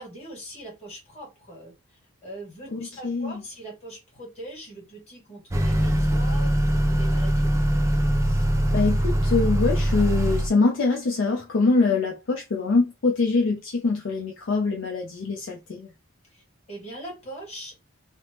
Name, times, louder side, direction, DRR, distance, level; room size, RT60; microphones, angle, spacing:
voice 1, 0.0-1.7 2.2-7.5 16.3-17.8, right 1 dB, 30° left, 1.6 m, -41 dB
voice 2, 2.7-3.4 8.3-8.4 8.7-15.9, left 3 dB, 55° left, 0.5 m, -24 dB
Motor vehicle (road) / Accelerating revving vroom, 5.5-10.5, equal, 15° right, 0.3 m, -22 dB
3.2 x 2.0 x 2.9 m
head